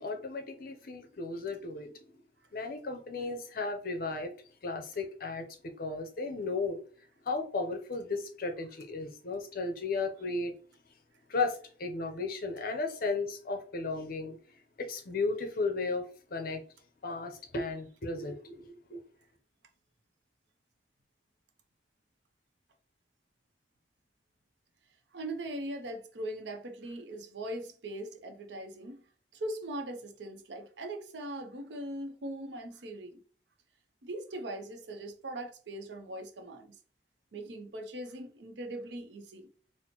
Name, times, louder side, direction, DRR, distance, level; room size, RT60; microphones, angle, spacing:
voice 1, 0.0-2.1 2.5-4.3 4.6-5.5 5.8-6.8 7.2-10.5 11.3-14.4 14.8-16.6 17.0-19.0, left 3 dB, 55° left, 0.6 m, -35 dB
voice 2, 25.1-29.0 29.3-33.2 34.0-36.8 37.3-39.5, right 1 dB, 75° right, 0.6 m, -40 dB
4.2 x 2.0 x 2.9 m
head